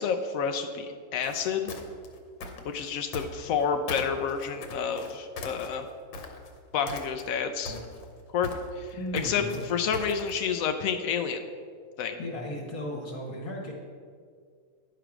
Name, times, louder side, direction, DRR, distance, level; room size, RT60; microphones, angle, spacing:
voice 1, 0.0-1.7 2.6-5.9 6.7-7.8 8.3-11.4 12.0-12.2, left 6 dB, 90° left, 6 dB, 0.7 m, -29 dB
sound 1, 1.1-3.6 3.9-6.6 6.9-7.4 7.7-10.4, left 3 dB, 75° left, 1.6 m, -40 dB
voice 2, 8.9-9.6 12.2-13.7, left 1 dB, 50° left, -2 dB, 1.6 m, -35 dB
10.0 x 5.0 x 5.9 m, 2.1 s
omnidirectional pair, 2.1 m